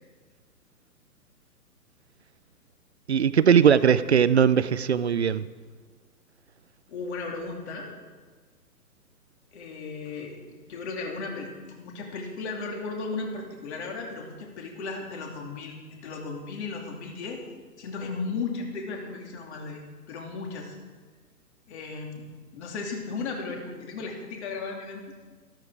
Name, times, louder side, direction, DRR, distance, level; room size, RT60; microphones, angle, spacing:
voice 1, 3.1-5.5, right 7 dB, 45° right, 15 dB, 0.4 m, -20 dB
voice 2, 6.9-7.9 9.5-17.4 17.8-19.8 20.1-20.7 21.7-22.3 22.5-25.0, left 4 dB, 40° left, 1 dB, 2.8 m, -35 dB
13.5 x 13.5 x 4.8 m, 1.5 s
figure-of-eight pair, 135°, 50 cm